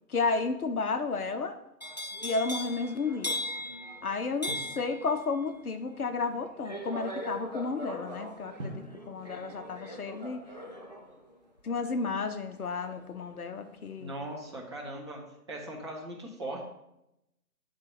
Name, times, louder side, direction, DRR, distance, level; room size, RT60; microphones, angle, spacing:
voice 1, 0.1-1.6 2.2-3.4 4.0-10.4 11.6-14.1, left 4 dB, 65° left, 8 dB, 0.8 m, -32 dB
sound 1, 1.8-13.8 14.1-14.5, left 1 dB, 30° left, 0.5 m, -40 dB
Drum, 4.5-6.0 8.6-10.8, right 1 dB, 40° right, 1.0 m, -47 dB
voice 2, 14.0-15.2 15.5-16.6, right 1 dB, 20° right, -4 dB, 0.9 m, -39 dB
8.5 x 3.9 x 4.8 m, 0.86 s
figure-of-eight pair, 155°, 47 cm